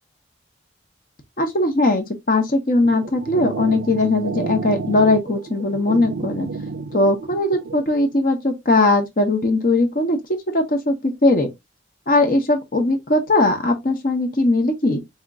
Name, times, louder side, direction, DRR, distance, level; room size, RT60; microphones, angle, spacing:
voice 1, 1.4-6.5 6.9-10.2 10.5-11.5 12.1-15.0, left 2 dB, 45° left, 0.8 m, -19 dB
sound 1, 2.8-7.8, right 4 dB, 75° right, 0.4 m, -31 dB
4.3 x 2.8 x 2.4 m
head